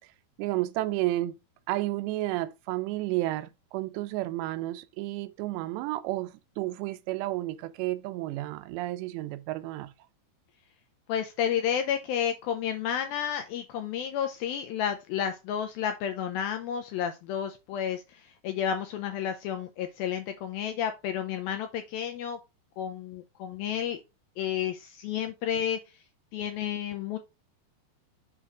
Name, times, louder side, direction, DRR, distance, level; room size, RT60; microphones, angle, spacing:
voice 1, 0.4-1.4 1.7-9.9, right 17 dB, 85° right, 2.8 m, -31 dB
voice 2, 11.1-22.4 22.8-24.0 24.4-25.8 26.3-27.2, left 9 dB, 85° left, 2.2 m, -31 dB
7.4 x 3.4 x 6.0 m
omnidirectional pair, 4.9 m